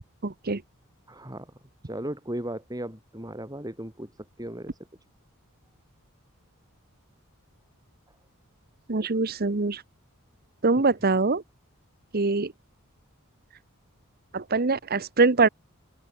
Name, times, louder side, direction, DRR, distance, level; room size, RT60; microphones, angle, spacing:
voice 1, 0.2-0.6 8.9-9.8 10.6-11.4 12.1-12.5 14.3-15.5, right 3 dB, 45° right, 1.0 m, -23 dB
voice 2, 1.1-1.5 1.9-4.1 4.4-4.7, right 1 dB, 15° right, 4.1 m, -36 dB
open air
head